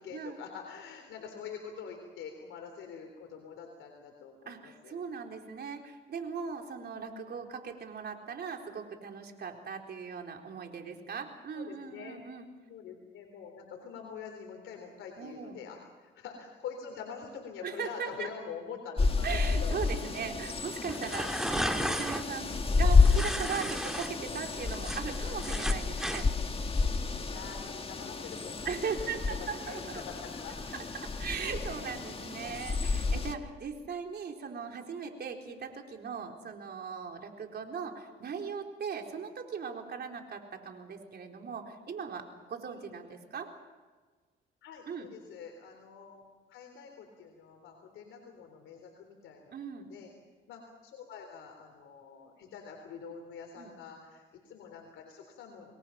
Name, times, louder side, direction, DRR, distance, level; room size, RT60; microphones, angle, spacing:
voice 1, 0.0-5.0 6.8-7.4 11.5-12.2 12.7-19.8 27.3-30.5 42.7-43.1 44.6-46.2 46.5-50.1 50.5-55.7, left 6 dB, 85° left, 3 dB, 3.8 m, -45 dB
voice 2, 4.5-12.5 15.2-15.6 17.6-18.3 19.2-26.3 28.7-29.8 31.0-43.5 44.9-45.1 49.5-49.9 53.6-53.7, right 6 dB, 55° right, 3 dB, 4.0 m, -39 dB
sound 1, 19.0-33.3, left 4 dB, 30° left, 1.9 m, -30 dB
sound 2, 20.9-22.2 23.1-24.1 24.5-26.2, equal, 5° right, 1.7 m, -34 dB
28.0 x 22.0 x 5.9 m, 1.4 s
cardioid pair, 90°, 20 cm